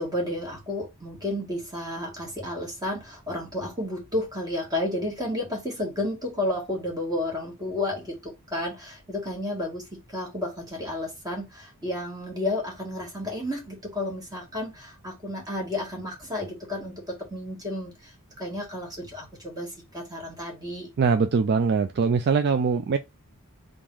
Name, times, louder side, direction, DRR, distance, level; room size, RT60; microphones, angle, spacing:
voice 1, 0.0-20.9, left 1 dB, 15° right, 1.6 m, -32 dB
voice 2, 21.0-23.0, right 5 dB, 50° right, 0.4 m, -22 dB
3.7 x 2.5 x 4.6 m
head